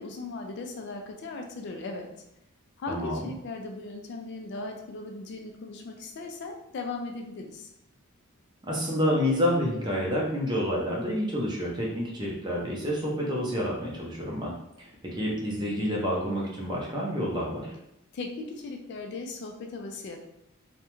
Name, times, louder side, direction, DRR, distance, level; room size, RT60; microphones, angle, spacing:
voice 1, 0.0-2.1 2.8-7.7 18.1-20.2, left 3 dB, 50° left, 3 dB, 0.3 m, -38 dB
voice 2, 2.9-3.3 8.7-14.5 14.8-17.7, equal, 20° right, -3 dB, 0.5 m, -28 dB
2.3 x 2.1 x 2.9 m, 0.81 s
head